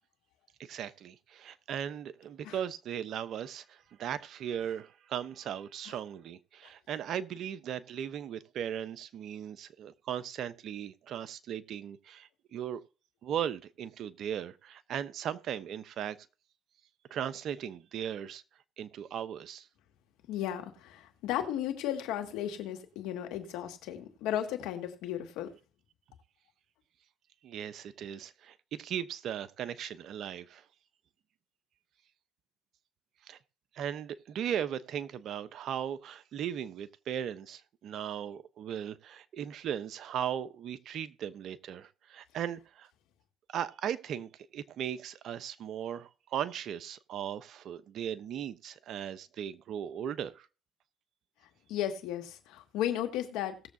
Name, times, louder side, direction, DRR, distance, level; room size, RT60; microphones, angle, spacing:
voice 1, 0.6-12.8 13.2-16.2 17.1-18.4 18.8-19.7 27.4-30.6 33.3-33.4 33.7-42.9 43.5-50.5, right 9 dB, 60° right, 0.9 m, -37 dB
voice 2, 20.3-25.5 51.7-53.6, left 11 dB, 75° left, 2.0 m, -35 dB
18.5 x 7.3 x 2.8 m
supercardioid pair, 75°, 0 cm